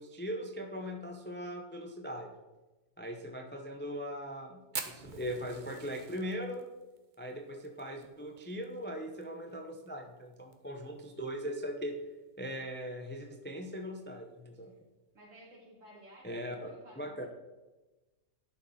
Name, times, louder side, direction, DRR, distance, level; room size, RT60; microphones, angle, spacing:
voice 1, 0.0-2.3 3.0-4.6 4.9-6.7 7.2-12.0 12.4-14.7 16.2-17.3, equal, 10° left, 3 dB, 0.5 m, -40 dB
Fire, 4.7-9.2 9.5-9.6 9.9-10.0 10.3-10.8 11.3-11.4 12.4-12.6, right 5 dB, 40° right, 0.9 m, -44 dB
voice 2, 15.1-17.3, equal, 60° right, -4 dB, 3.2 m, -55 dB
11.5 x 6.3 x 4.2 m, 1.1 s
omnidirectional pair, 1.5 m